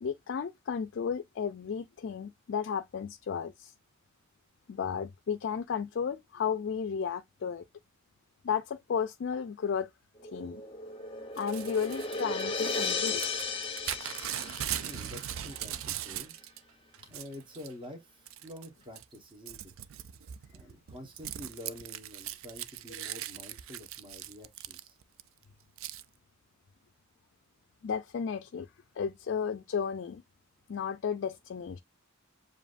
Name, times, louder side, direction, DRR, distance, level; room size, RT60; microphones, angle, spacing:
voice 1, 0.0-3.7 4.7-7.6 8.4-9.9 10.3-10.6 11.4-13.5 27.8-28.7 29.0-30.2 30.7-31.8, left 7 dB, 60° left, 0.4 m, -33 dB
sound 1, 10.2-15.4, left 4 dB, 25° left, 0.7 m, -35 dB
Crumpling crinkling / Tearing, 11.4-16.6 16.9-17.7 18.3-18.7 19.0-25.2 25.8-26.0, right 11 dB, 75° right, 0.4 m, -40 dB
voice 2, 14.8-16.3 16.8-19.7 20.5-25.0, left 1 dB, 25° right, 1.2 m, -48 dB
7.1 x 2.6 x 2.5 m
head